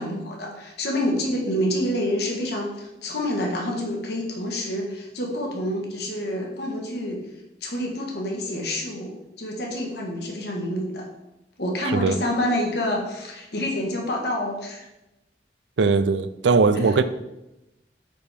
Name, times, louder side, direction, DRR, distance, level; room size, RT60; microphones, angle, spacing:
voice 1, 0.0-7.2 7.6-11.1 11.6-14.8 16.8-16.9, left 1 dB, 65° left, 1.4 m, -28 dB
voice 2, 15.8-17.0, right 4 dB, 90° right, 0.5 m, -19 dB
8.9 x 5.2 x 3.4 m
head